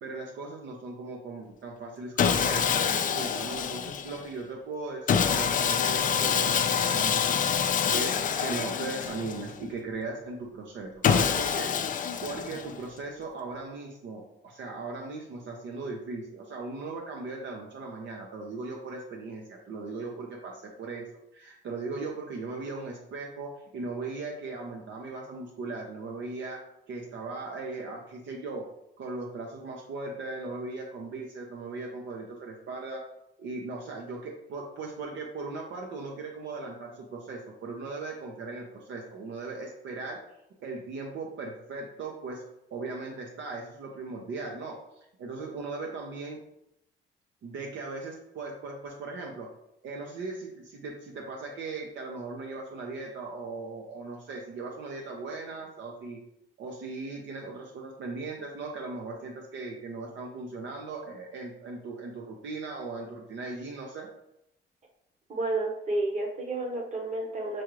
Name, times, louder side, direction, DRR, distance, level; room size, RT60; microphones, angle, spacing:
voice 1, 0.0-11.7 12.2-21.1 21.3-26.6 26.9-28.7 29.0-33.0 33.4-40.2 40.6-42.4 42.7-46.4 47.4-49.5 49.8-56.2 56.6-64.1, right 3 dB, 70° right, 0 dB, 0.7 m, -38 dB
Sawing, 2.2-4.2 5.1-9.6 11.0-12.9, left 7 dB, 40° left, 0.4 m, -26 dB
voice 2, 65.3-67.6, right 2 dB, 35° right, 0 dB, 1.1 m, -31 dB
6.0 x 2.4 x 3.1 m, 0.81 s
cardioid pair, 90°, 20 cm